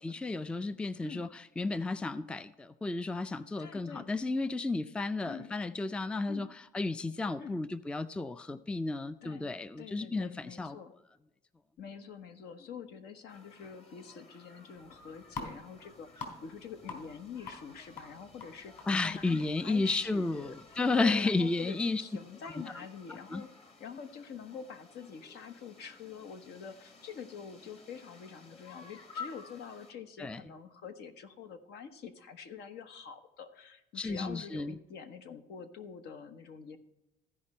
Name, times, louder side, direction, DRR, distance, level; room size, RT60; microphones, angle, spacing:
voice 1, 0.0-10.8 18.9-22.0 23.3-23.4 30.2-30.4 34.0-34.8, left 3 dB, 5° left, 14 dB, 0.3 m, -32 dB
voice 2, 3.6-4.1 5.2-5.6 6.3-6.5 7.4-7.6 9.2-10.9 11.8-23.5 23.8-36.8, left 6 dB, 75° left, 8 dB, 1.1 m, -46 dB
sound 1, 13.3-29.9, left 5 dB, 35° left, 1.6 m, -53 dB
sound 2, 14.8-21.5, left 4 dB, 55° left, 3.3 m, -48 dB
15.0 x 5.1 x 4.3 m, 0.97 s
cardioid pair, 110°, 17 cm